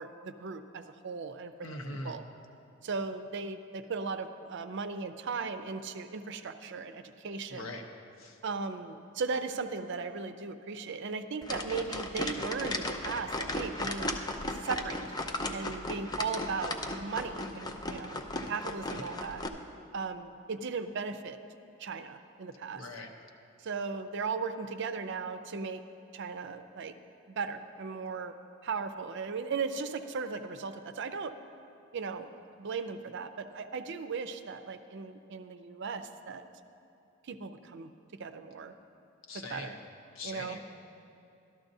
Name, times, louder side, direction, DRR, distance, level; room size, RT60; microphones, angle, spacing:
voice 1, 0.0-1.5 2.0-2.2 2.8-7.7 8.4-14.1 14.5-15.0 15.5-18.2 18.5-19.4 19.9-21.4 21.8-22.8 23.6-25.8 26.1-26.9 27.3-28.3 28.6-31.3 31.9-32.3 32.6-36.4 37.2-37.9 38.2-38.7 39.3-39.8 40.2-40.6, right 5 dB, 60° right, 9 dB, 0.5 m, -37 dB
voice 2, 1.6-2.2 7.5-7.9 8.2-8.4 22.7-23.1 39.3-39.8 40.1-40.6, left 2 dB, 85° left, 3 dB, 0.9 m, -41 dB
sound 1, 11.4-19.5, left 2 dB, 20° left, 0.5 m, -36 dB
13.0 x 12.5 x 2.7 m, 2.7 s
head